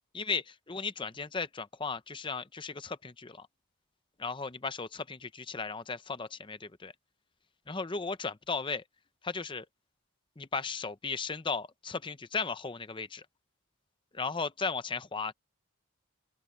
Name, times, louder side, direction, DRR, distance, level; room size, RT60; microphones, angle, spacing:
voice 1, 0.1-3.5 4.2-6.9 7.7-8.8 9.2-9.7 10.4-13.3 14.1-15.3, left 4 dB, 20° left, 0.6 m, -36 dB
open air
head